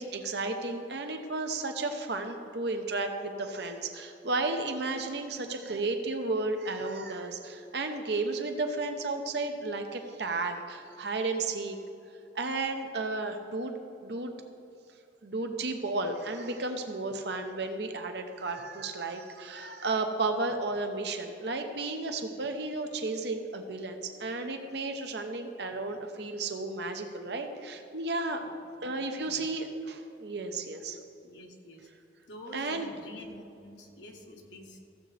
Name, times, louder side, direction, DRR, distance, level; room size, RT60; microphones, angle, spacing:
voice 1, 0.0-11.8 12.3-14.3 15.2-28.4 28.8-31.0 32.5-32.9, right 3 dB, 65° right, 6 dB, 0.9 m, -33 dB
voice 2, 29.2-29.7 31.2-31.9 32.3-34.8, left 1 dB, 80° left, 1 dB, 1.4 m, -48 dB
15.5 x 7.5 x 3.4 m, 2.7 s
head